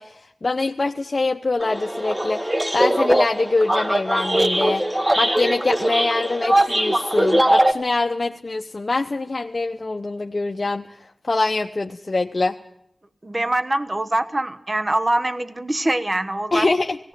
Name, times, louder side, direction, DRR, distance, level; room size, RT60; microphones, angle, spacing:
voice 1, 0.0-4.8 5.2-10.9 11.3-12.6 16.5-17.0, left 3 dB, 55° left, 4 dB, 0.8 m, -24 dB
sound 1, 1.6-7.7, right 1 dB, 20° right, 1.9 m, -21 dB
voice 2, 13.2-16.7, right 1 dB, 40° right, 10 dB, 1.2 m, -23 dB
17.5 x 17.5 x 9.0 m, 0.77 s
cardioid pair, 40°, 0 cm